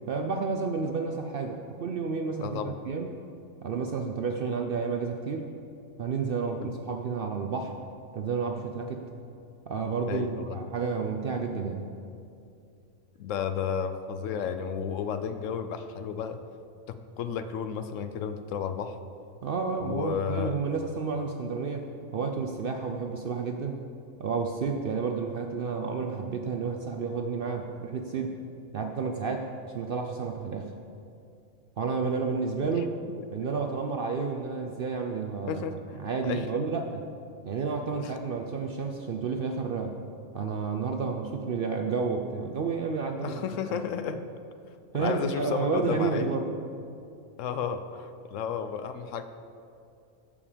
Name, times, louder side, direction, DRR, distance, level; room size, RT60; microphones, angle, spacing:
voice 1, 0.1-3.1 3.6-5.5 6.0-7.7 8.1-9.1 9.7-11.8 19.4-21.8 22.1-23.8 24.2-28.4 28.7-30.7 31.8-32.9 33.3-37.0 37.5-39.9 40.3-43.3 43.7-43.8 44.9-46.5, right 5 dB, 60° right, 3 dB, 0.6 m, -31 dB
voice 2, 2.4-2.7 6.6-6.7 10.1-10.6 13.2-16.4 16.9-18.9 19.7-20.6 32.6-32.7 35.5-36.0 36.2-36.5 38.0-38.2 43.2-44.2 45.0-46.4 47.4-49.2, left 7 dB, 70° left, 10 dB, 0.9 m, -32 dB
14.0 x 5.3 x 5.0 m, 2.6 s
omnidirectional pair, 1.4 m